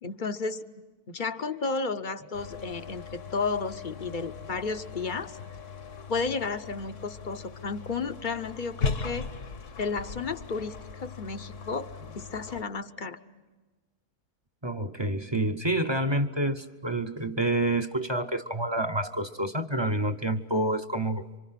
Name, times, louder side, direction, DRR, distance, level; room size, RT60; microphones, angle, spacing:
voice 1, 0.0-0.6 1.1-5.4 6.1-9.3 9.8-11.9 12.1-13.2, left 4 dB, 40° left, 9 dB, 0.9 m, -32 dB
sound 1, 2.3-12.6, left 5 dB, 55° left, 1.4 m, -38 dB
voice 2, 14.6-21.3, right 1 dB, 20° right, 7 dB, 0.8 m, -28 dB
28.0 x 25.5 x 5.8 m, 1.3 s
omnidirectional pair, 1.6 m